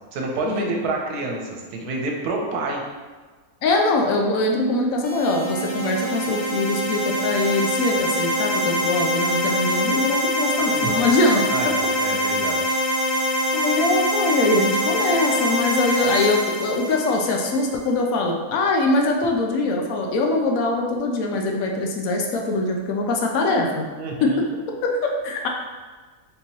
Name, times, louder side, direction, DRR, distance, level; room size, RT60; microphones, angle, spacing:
voice 1, 0.1-2.8 10.6-11.1 11.5-12.8 24.0-24.4, right 2 dB, 85° right, 0 dB, 1.1 m, -28 dB
voice 2, 3.6-11.4 13.5-23.9 24.2-24.4 24.8-25.5, left 2 dB, 70° left, 1 dB, 0.9 m, -22 dB
sound 1, 5.0-17.7, equal, 50° left, 0.6 m, -24 dB
3.7 x 2.9 x 2.8 m, 1.4 s
omnidirectional pair, 1.6 m